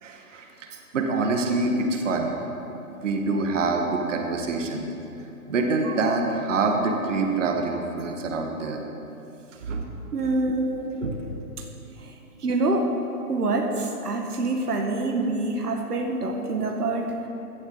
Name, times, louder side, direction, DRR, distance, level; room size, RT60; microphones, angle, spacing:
voice 1, 0.0-2.3 3.0-4.9 5.5-8.8 9.6-9.9 10.2-10.3 10.6-11.3, right 3 dB, 55° right, 2 dB, 1.7 m, -26 dB
voice 2, 10.1-10.7 12.4-12.9 13.3-17.1, right 2 dB, 80° right, 2 dB, 1.6 m, -25 dB
16.0 x 12.0 x 3.9 m, 2.9 s
hypercardioid pair, 150°, 46 cm